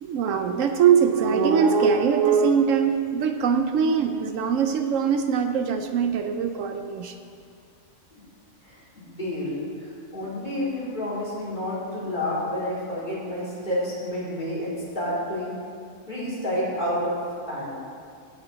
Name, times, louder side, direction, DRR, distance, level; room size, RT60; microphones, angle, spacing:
voice 1, 0.0-7.1, right 6 dB, 75° right, 7 dB, 1.0 m, -22 dB
voice 2, 8.6-15.5 16.1-17.2 17.5-17.7, left 1 dB, 35° left, -8 dB, 3.5 m, -29 dB
16.5 x 6.9 x 3.9 m, 2.3 s
omnidirectional pair, 1.4 m